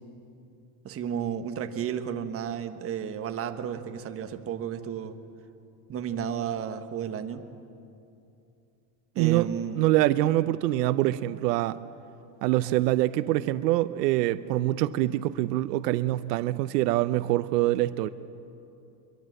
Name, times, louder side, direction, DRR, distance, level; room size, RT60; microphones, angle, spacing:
voice 1, 0.8-5.2 5.9-7.4 9.1-9.8, right 8 dB, 30° right, 7 dB, 1.4 m, -32 dB
voice 2, 9.2-9.5 9.8-11.8 12.4-18.1, right 16 dB, 85° right, 13 dB, 0.9 m, -25 dB
24.5 x 22.0 x 7.8 m, 2.7 s
supercardioid pair, 140°, 47 cm